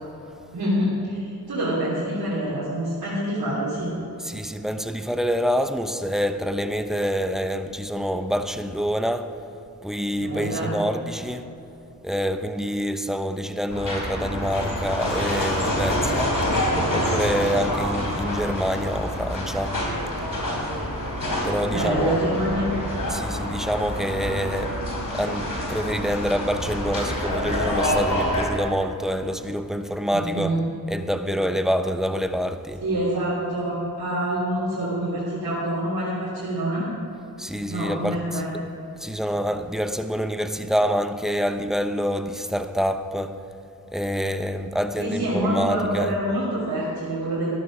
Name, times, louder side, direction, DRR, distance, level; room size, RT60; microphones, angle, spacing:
voice 1, 0.5-3.9 10.2-10.7 21.7-22.7 30.1-30.6 32.8-36.9 37.7-38.5 45.0-47.5, right 1 dB, 75° right, 3.0 m, -26 dB
voice 2, 4.2-9.5 9.8-11.5 12.0-16.4 16.9-19.9 21.4-22.5 23.1-30.6 30.9-32.8 37.4-38.5 39.0-43.5 43.9-46.1, equal, ahead, 0.9 m, -26 dB
sound 1, 13.7-28.5, left 1 dB, 60° left, 3.7 m, -27 dB
13.0 x 12.0 x 5.0 m
cardioid pair, 40°, 37 cm